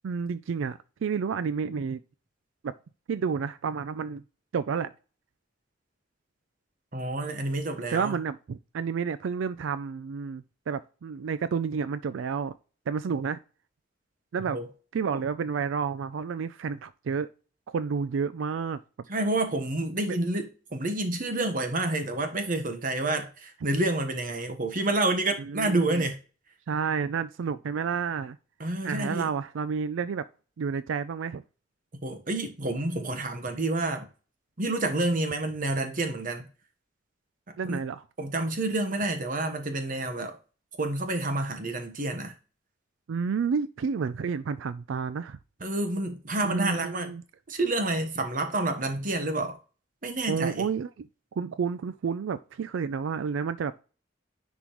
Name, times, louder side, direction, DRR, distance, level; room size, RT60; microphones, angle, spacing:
voice 1, 0.0-2.0 2.6-2.7 3.1-4.2 4.5-4.9 7.9-12.6 12.9-13.4 14.3-14.6 14.9-17.3 17.7-18.8 20.0-20.2 25.4-26.0 26.7-28.4 28.8-30.2 30.6-31.4 37.6-38.0 43.1-45.4 46.4-47.2 50.3-51.1 51.4-53.7, right 6 dB, 90° right, 0.4 m, -30 dB
voice 2, 6.9-8.1 14.5-14.7 19.1-26.2 28.6-29.3 32.0-34.1 34.6-36.5 37.7-37.8 38.2-40.4 40.8-42.3 45.6-47.1 47.5-49.6 50.0-50.7, right 2 dB, 45° right, 1.1 m, -29 dB
10.0 x 3.6 x 3.0 m
head